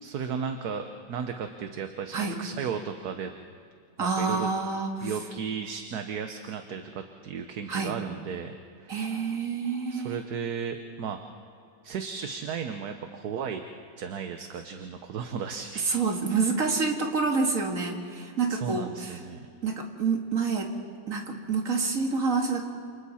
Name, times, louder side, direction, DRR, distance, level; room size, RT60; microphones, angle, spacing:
voice 1, 0.0-3.3 4.0-4.5 5.0-9.2 9.9-11.2 11.8-13.6 14.0-16.0 18.5-19.5, right 6 dB, 60° right, 6 dB, 1.3 m, -35 dB
voice 2, 4.0-5.1 7.7-8.0 8.9-10.2 15.8-19.2 19.6-20.7 21.1-22.6, right 4 dB, 45° right, 2 dB, 2.3 m, -28 dB
29.0 x 28.5 x 4.3 m, 2.3 s
omnidirectional pair, 2.1 m